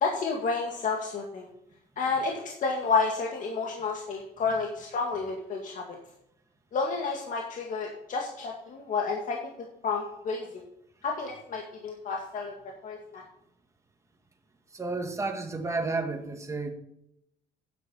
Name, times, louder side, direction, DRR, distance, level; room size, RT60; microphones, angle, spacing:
voice 1, 0.0-1.5 2.0-5.8 6.7-9.4 9.8-10.5 11.0-12.5 12.8-13.2, left 4 dB, 50° left, 0 dB, 2.0 m, -30 dB
voice 2, 14.7-16.7, right 3 dB, 15° right, 3 dB, 1.9 m, -31 dB
9.9 x 7.7 x 5.6 m, 0.79 s
cardioid pair, 110°, 17 cm